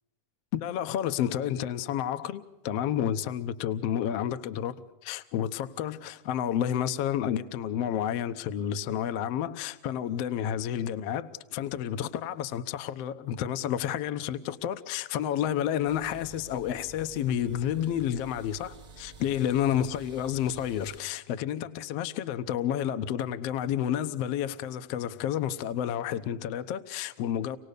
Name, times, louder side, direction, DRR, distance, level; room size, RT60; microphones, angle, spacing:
voice 1, 0.5-27.6, left 10 dB, 70° left, 1.6 m, -30 dB
sound 1, 15.9-21.0, right 3 dB, 45° right, 0.8 m, -50 dB
28.0 x 18.5 x 6.7 m
omnidirectional pair, 3.9 m